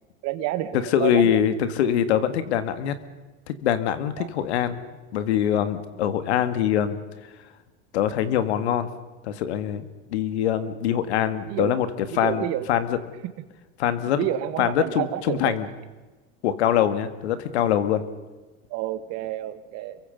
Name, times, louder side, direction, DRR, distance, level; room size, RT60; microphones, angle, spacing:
voice 1, 0.2-1.4 4.2-4.3 11.5-11.8 12.1-12.7 14.0-15.6 18.7-20.0, right 13 dB, 50° right, 11 dB, 1.9 m, -29 dB
voice 2, 0.7-3.0 3.5-4.8 5.1-7.0 7.9-8.9 9.2-13.0 13.8-14.3 14.6-15.7 16.4-18.0, left 9 dB, 80° left, 12 dB, 2.0 m, -23 dB
27.5 x 23.0 x 5.3 m, 1.2 s
supercardioid pair, 110°, 33 cm